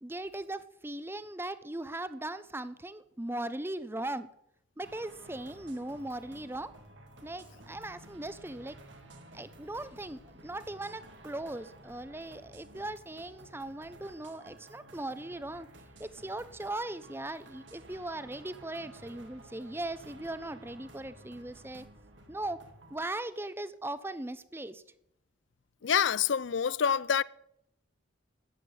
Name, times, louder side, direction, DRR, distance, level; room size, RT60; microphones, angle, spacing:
voice 1, 0.0-4.3 4.8-6.7 7.2-8.8 9.3-15.7 16.0-21.9 22.3-22.6 22.9-24.8, right 1 dB, 10° right, 0.7 m, -39 dB
sound 1, 4.8-23.0, right 1 dB, 75° right, 2.4 m, -53 dB
voice 2, 25.8-27.2, left 7 dB, 70° left, 0.5 m, -27 dB
14.5 x 10.5 x 7.7 m
head